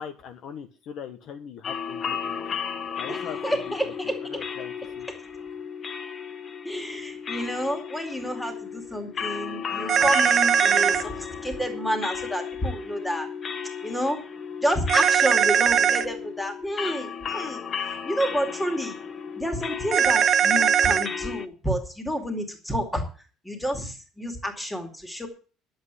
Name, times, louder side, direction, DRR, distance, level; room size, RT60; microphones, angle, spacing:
voice 1, 0.0-2.4 2.9-3.9 4.3-5.1, left 7 dB, 45° left, 7 dB, 1.2 m, -40 dB
sound 1, 1.6-21.5, left 7 dB, 25° left, 0.9 m, -34 dB
voice 2, 3.1-4.2 6.6-13.3 13.8-14.2 14.6-17.6 18.0-19.0 19.4-23.0 23.4-25.3, equal, 5° left, 4 dB, 2.4 m, -29 dB
sound 2, 9.9-11.0 14.9-16.0 19.9-21.1, right 8 dB, 30° right, 0.8 m, -20 dB
11.0 x 8.0 x 8.1 m, 0.37 s
cardioid pair, 170°, 0 cm